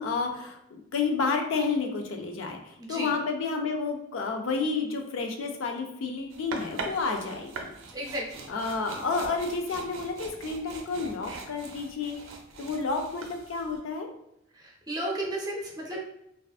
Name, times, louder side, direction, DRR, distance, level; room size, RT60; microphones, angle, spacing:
voice 1, 0.0-7.7 8.5-12.2 12.6-14.1, left 4 dB, 85° left, 3 dB, 0.4 m, -30 dB
voice 2, 2.8-3.1 7.9-8.2 14.6-16.0, right 1 dB, 20° right, -1 dB, 0.6 m, -33 dB
sound 1, 6.3-13.8, right 3 dB, 80° right, 0.4 m, -42 dB
2.4 x 2.4 x 2.3 m, 0.80 s
head